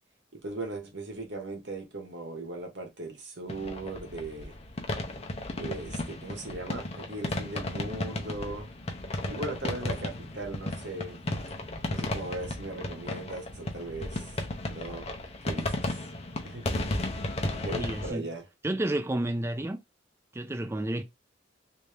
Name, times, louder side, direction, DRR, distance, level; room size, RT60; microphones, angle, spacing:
voice 1, 0.3-4.5 5.6-8.7 9.3-11.2 11.9-14.3 14.7-15.1 15.4-15.9 16.4-16.8 17.5-18.4, right 2 dB, 70° right, 1.2 m, -38 dB
sound 1, 3.5-18.1, left 1 dB, 35° left, 0.6 m, -34 dB
voice 2, 17.7-18.3 18.6-19.8 20.3-21.0, right 1 dB, 15° right, 0.4 m, -31 dB
3.3 x 2.7 x 3.3 m
head